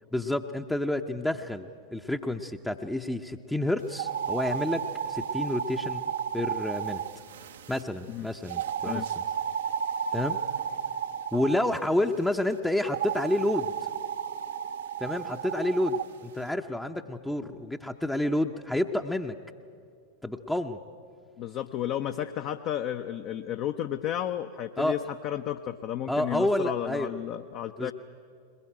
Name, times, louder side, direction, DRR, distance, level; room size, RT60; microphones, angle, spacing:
voice 1, 0.1-7.0 7.7-9.1 10.1-10.4 11.3-13.7 15.0-19.4 20.2-20.8 24.8-24.9 26.1-27.1 27.8-27.9, left 1 dB, 5° left, 5 dB, 0.7 m, -29 dB
sound 1, 3.9-7.8 8.5-11.8 12.8-16.1, right 8 dB, 60° right, 0.7 m, -33 dB
voice 2, 21.4-27.9, left 11 dB, 40° left, 8 dB, 0.7 m, -32 dB
21.5 x 20.5 x 9.0 m, 2.3 s
figure-of-eight pair, 90°, 0 cm